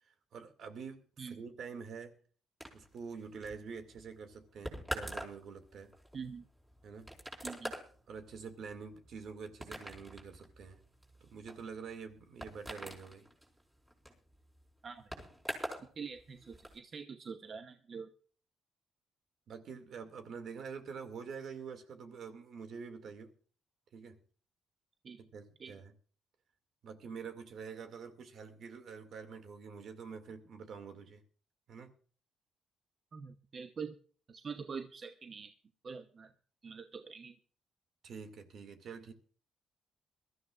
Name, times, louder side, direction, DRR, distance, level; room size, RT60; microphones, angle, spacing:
voice 1, 0.0-2.2 2.7-5.9 6.8-7.1 8.1-10.8 11.2-13.3 19.5-23.3 23.9-24.2 25.2-25.9 26.8-31.2 31.7-31.9 38.0-39.1, right 5 dB, 65° right, 7 dB, 2.3 m, -46 dB
sound 1, 2.6-15.9 16.1-16.8, equal, 10° right, 4.7 m, -45 dB
voice 2, 6.1-6.5 7.4-7.7 14.8-15.0 15.8-18.1 25.0-25.2 25.6-25.8 33.1-34.0 34.3-35.5 35.8-36.3 36.6-37.4, right 5 dB, 45° right, 8 dB, 0.9 m, -45 dB
22.0 x 13.5 x 2.5 m, 0.43 s
cardioid pair, 90°, 0 cm